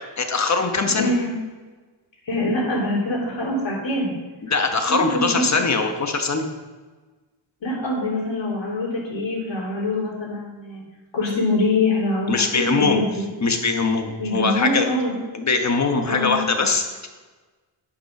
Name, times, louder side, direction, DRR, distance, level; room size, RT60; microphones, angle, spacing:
voice 1, 0.2-1.1 4.4-6.4 12.3-13.0 13.4-14.9 15.3-17.1, left 4 dB, 35° left, 5 dB, 1.2 m, -22 dB
voice 2, 0.9-1.3 2.3-4.1 4.8-5.5 7.6-10.8 11.1-13.2 14.2-15.1 16.0-16.4, left 2 dB, 70° left, -5 dB, 3.2 m, -24 dB
9.9 x 5.5 x 6.0 m, 1.3 s
wide cardioid pair, 110°, 47 cm